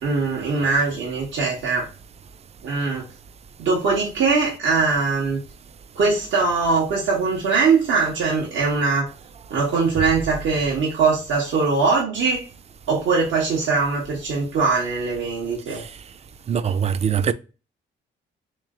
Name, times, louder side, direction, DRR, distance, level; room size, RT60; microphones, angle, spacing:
voice 1, 0.0-1.9 2.6-3.0 3.6-5.4 5.9-9.1 9.5-12.4 12.9-15.8, right 4 dB, 75° right, 1.4 m, -21 dB
voice 2, 16.5-17.3, right 7 dB, 35° right, 0.4 m, -22 dB
3.2 x 3.1 x 3.7 m
cardioid pair, 90°, 20 cm